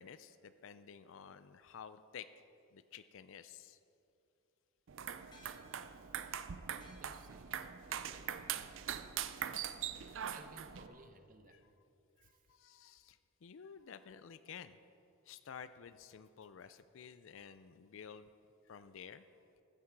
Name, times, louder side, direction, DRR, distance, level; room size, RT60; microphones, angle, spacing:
voice 1, 0.0-2.5 2.7-3.8 7.8-7.9 8.4-8.5 11.5-11.7 12.2-14.8 15.2-18.3 18.6-19.3, left 7 dB, 65° left, 13 dB, 0.4 m, -53 dB
sound 1, 4.9-10.9, right 9 dB, 65° right, 0.5 m, -42 dB
sound 2, 5.3-10.0, left 1 dB, 20° left, 1.4 m, -68 dB
voice 2, 7.0-8.6 10.3-11.6 12.2-12.4, right 2 dB, 40° right, 7 dB, 0.8 m, -59 dB
15.0 x 9.6 x 4.6 m, 2.8 s
head